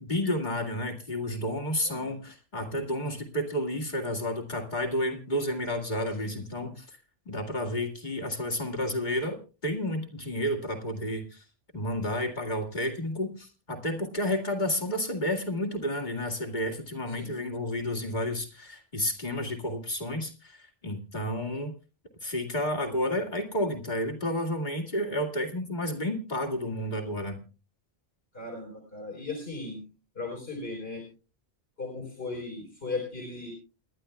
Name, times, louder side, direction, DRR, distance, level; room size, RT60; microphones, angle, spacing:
voice 1, 0.0-7.0 7.3-11.4 11.7-21.7 22.2-27.4, left 1 dB, 45° left, 2 dB, 2.4 m, -31 dB
voice 2, 6.1-6.7 17.1-17.4 28.3-29.9 30.1-31.0 31.8-33.5, left 3 dB, 75° left, -2 dB, 4.4 m, -37 dB
28.5 x 11.5 x 2.3 m, 0.34 s
omnidirectional pair, 1.0 m